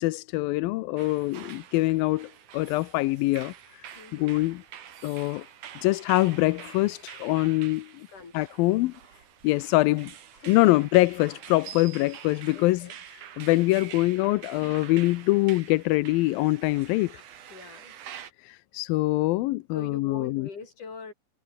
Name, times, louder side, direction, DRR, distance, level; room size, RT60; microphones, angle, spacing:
voice 1, 0.0-4.6 5.0-5.5 5.8-8.1 8.3-8.9 9.4-10.1 10.5-17.1 18.4-20.5, left 20 dB, 80° left, 2.2 m, -24 dB
sound 1, 1.0-18.3, right 10 dB, 55° right, 3.1 m, -46 dB
voice 2, 4.0-4.4 8.1-8.5 10.3-10.7 12.5-13.0 17.5-17.9 19.7-21.1, left 5 dB, 50° left, 6.9 m, -43 dB
omnidirectional pair, 4.5 m